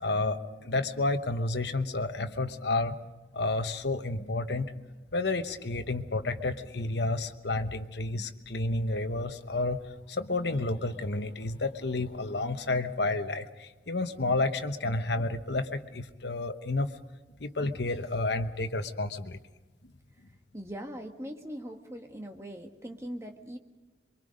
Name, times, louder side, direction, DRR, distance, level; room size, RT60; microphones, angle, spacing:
voice 1, 0.0-3.0 3.3-4.7 5.1-9.8 10.1-16.9 17.4-19.4, left 2 dB, 70° left, 9 dB, 1.1 m, -30 dB
voice 2, 20.5-23.6, equal, 15° right, 3 dB, 1.5 m, -41 dB
24.0 x 23.5 x 5.2 m, 1.1 s
head